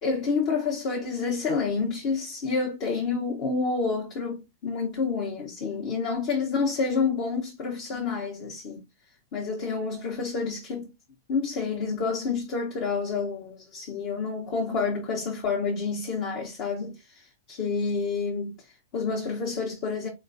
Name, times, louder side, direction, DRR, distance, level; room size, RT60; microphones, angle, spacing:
voice 1, 0.0-8.8 9.3-10.9 11.3-20.1, left 4 dB, 45° left, 1.6 m, -29 dB
4.3 x 4.1 x 2.6 m
figure-of-eight pair, 100°, 0 cm